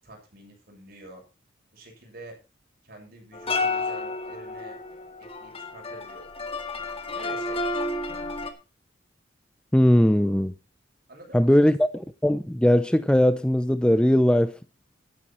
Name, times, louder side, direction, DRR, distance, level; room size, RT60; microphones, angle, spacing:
voice 1, 0.0-1.2 1.7-2.4 2.8-4.8 5.2-6.2 7.1-7.9 11.1-11.7, right 1 dB, 55° right, 7.2 m, -47 dB
sound 1, 3.3-8.5, left 3 dB, 30° left, 2.1 m, -31 dB
voice 2, 9.7-10.5 11.3-11.9 12.2-14.5, equal, 5° left, 0.6 m, -19 dB
12.5 x 12.5 x 4.4 m
head